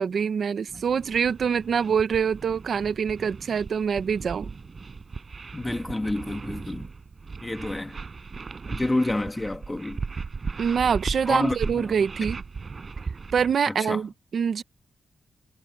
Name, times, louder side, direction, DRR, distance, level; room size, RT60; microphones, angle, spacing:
voice 1, 0.0-4.5 10.6-12.4 13.3-14.6, right 7 dB, 60° right, 0.9 m, -25 dB
sound 1, 0.7-13.6, right 4 dB, 40° right, 7.2 m, -37 dB
voice 2, 5.5-6.9 7.4-8.0 8.6-10.0 11.3-11.9 13.7-14.0, left 2 dB, 15° left, 2.1 m, -29 dB
wide cardioid pair, 130°, 0 cm